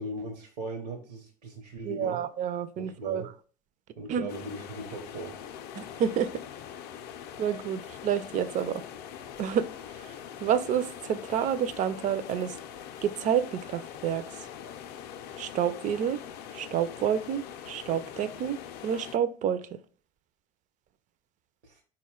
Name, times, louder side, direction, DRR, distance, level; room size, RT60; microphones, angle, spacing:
voice 1, 0.0-2.2 2.8-3.3 4.0-5.4 21.6-21.8, right 1 dB, 75° right, 0.8 m, -38 dB
voice 2, 1.9-3.2 4.1-4.3 5.8-6.3 7.4-8.8 9.4-9.7 10.4-12.5 13.0-14.2 15.4-16.2 16.5-18.6 18.8-19.6, right 8 dB, 40° right, 0.4 m, -29 dB
sound 1, 4.3-19.2, left 9 dB, 50° left, 0.4 m, -43 dB
4.0 x 2.2 x 3.6 m
hypercardioid pair, 80°, 21 cm